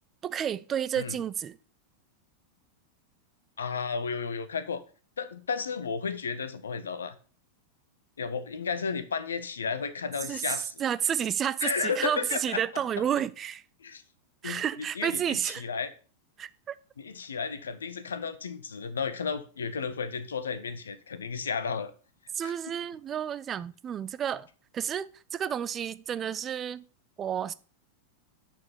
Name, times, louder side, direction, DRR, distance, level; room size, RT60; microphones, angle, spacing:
voice 1, 0.2-1.6 10.3-13.6 14.4-15.7 16.4-16.8 22.4-24.5 24.7-26.8 27.2-27.5, right 9 dB, 25° right, 0.3 m, -31 dB
voice 2, 3.6-4.8 5.2-7.2 8.2-10.8 11.6-12.6 13.8-14.0 14.4-14.6 15.0-15.9 17.0-21.9 22.4-22.5, left 5 dB, 70° left, 0.7 m, -33 dB
7.6 x 4.4 x 5.4 m
figure-of-eight pair, 90°, 0 cm